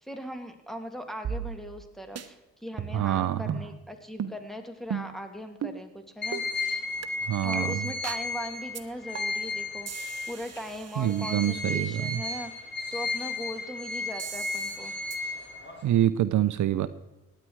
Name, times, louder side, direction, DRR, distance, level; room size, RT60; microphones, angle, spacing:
voice 1, 0.0-6.9 7.4-12.5 12.9-14.9, equal, ahead, 6 dB, 2.5 m, -39 dB
sound 1, 1.2-1.9 2.2-2.3 2.8-3.1 3.5-3.7 4.2-4.4 4.9-5.2 5.6-5.8 6.3-6.5 7.0-7.1 7.5-7.6 8.0-8.3 8.7-8.8 9.1-9.5 9.9-11.7 14.2-14.8 15.1-15.2, right 7 dB, 50° right, 1.2 m, -37 dB
voice 2, 2.9-3.4 7.3-7.8 11.0-12.2 15.8-16.9, right 12 dB, 65° right, 13 dB, 0.7 m, -26 dB
sound 2, 6.2-10.6 11.0-15.9, left 2 dB, 35° left, 3.7 m, -34 dB
17.5 x 10.0 x 4.8 m, 1.0 s
supercardioid pair, 60°, 33 cm